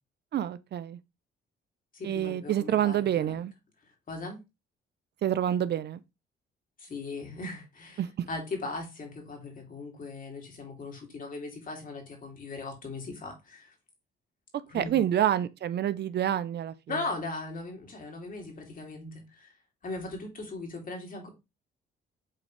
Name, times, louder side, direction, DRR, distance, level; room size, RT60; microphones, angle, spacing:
voice 1, 0.3-1.0 2.0-3.5 5.2-6.0 8.0-8.1 14.7-16.7, right 11 dB, 60° right, 0.6 m, -27 dB
voice 2, 1.9-3.4 4.1-4.4 6.8-8.0 8.3-13.7 14.7-15.0 16.9-19.5 19.8-21.3, left 3 dB, 45° left, 2.7 m, -38 dB
7.6 x 4.2 x 3.2 m
cardioid pair, 90°, 20 cm